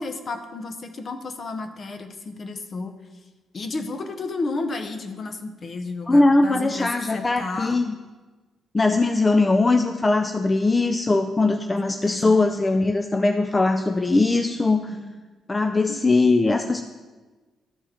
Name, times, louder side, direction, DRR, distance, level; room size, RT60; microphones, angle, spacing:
voice 1, 0.0-2.9 3.5-7.8 11.7-12.3 14.9-15.1, left 3 dB, 45° left, 7 dB, 0.9 m, -32 dB
voice 2, 6.1-7.9 8.7-15.0 15.5-16.8, left 3 dB, 20° left, 6 dB, 0.4 m, -20 dB
12.5 x 4.7 x 4.3 m, 1.3 s
cardioid pair, 90°, 0 cm